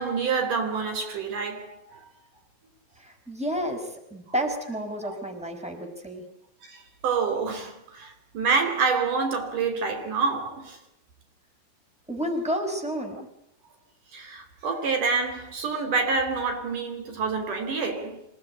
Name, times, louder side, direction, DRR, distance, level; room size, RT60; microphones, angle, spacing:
voice 1, 0.0-2.1 5.0-5.2 6.6-10.8 14.1-18.3, right 5 dB, 70° right, 4.9 m, -27 dB
voice 2, 3.0-6.2 12.1-13.3, equal, ahead, 4.8 m, -31 dB
27.0 x 18.5 x 9.9 m
omnidirectional pair, 3.8 m